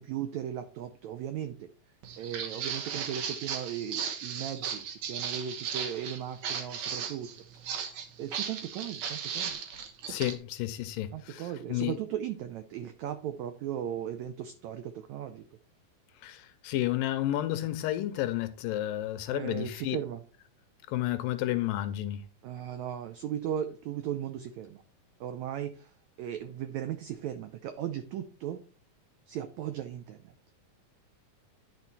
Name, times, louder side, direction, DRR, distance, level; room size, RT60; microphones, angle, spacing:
voice 1, 0.0-1.7 2.2-7.3 8.2-9.6 11.1-15.4 19.3-20.2 22.4-24.8 25.2-25.9 26.2-28.6 29.3-30.2, right 10 dB, 90° right, 1.6 m, -37 dB
Walk footsteps, 2.0-10.3, right 7 dB, 65° right, 2.2 m, -36 dB
voice 2, 10.1-12.0 16.2-20.0 20.9-22.2, left 14 dB, 85° left, 2.3 m, -31 dB
11.0 x 4.4 x 4.1 m
omnidirectional pair, 4.1 m